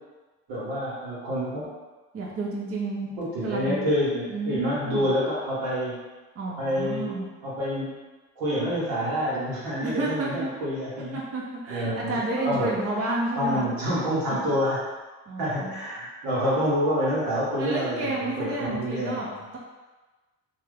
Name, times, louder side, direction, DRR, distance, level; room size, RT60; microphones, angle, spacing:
voice 1, 0.5-1.6 3.2-6.0 6.6-7.1 7.4-7.9 8.4-11.2 11.7-12.1 12.4-12.8 13.3-14.8 15.4-19.4, equal, 85° right, -7 dB, 1.2 m, -27 dB
voice 2, 2.1-3.1 3.4-3.8 4.3-5.1 6.4-7.3 9.8-10.5 11.1-13.7 15.3-15.8 17.6-19.3, right 2 dB, 40° right, -4 dB, 0.8 m, -30 dB
2.8 x 2.3 x 3.3 m, 1.2 s
supercardioid pair, 60°, 35 cm